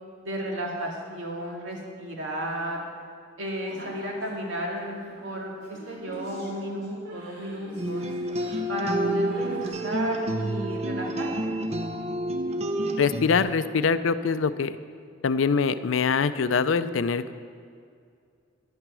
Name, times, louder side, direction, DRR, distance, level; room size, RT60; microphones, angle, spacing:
voice 1, 0.2-2.9 3.4-8.0 8.7-11.6, equal, 80° right, -1 dB, 2.2 m, -33 dB
sound 1, 3.7-9.7, right 1 dB, 60° right, 3.3 m, -43 dB
sound 2, 7.8-13.4, right 1 dB, 35° right, 0.6 m, -29 dB
voice 2, 13.0-14.7 15.2-17.3, left 5 dB, 80° left, 13 dB, 0.5 m, -24 dB
10.5 x 9.0 x 6.2 m, 2.3 s
head